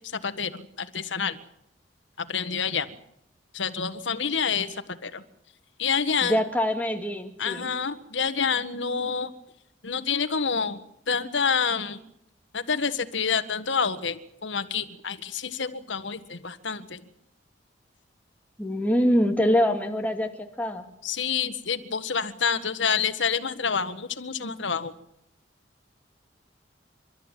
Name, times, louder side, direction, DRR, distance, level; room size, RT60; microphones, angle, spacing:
voice 1, 0.2-0.6 0.9-1.4 2.3-2.9 3.5-4.7 5.0-5.2 5.8-6.4 7.4-9.3 9.8-10.8 11.1-12.0 12.5-17.0 21.0-24.9, left 6 dB, 80° left, 11 dB, 1.6 m, -27 dB
voice 2, 6.2-7.7 18.6-20.3 20.6-20.8, equal, 10° left, 4 dB, 2.3 m, -24 dB
29.0 x 13.5 x 9.2 m, 0.79 s
head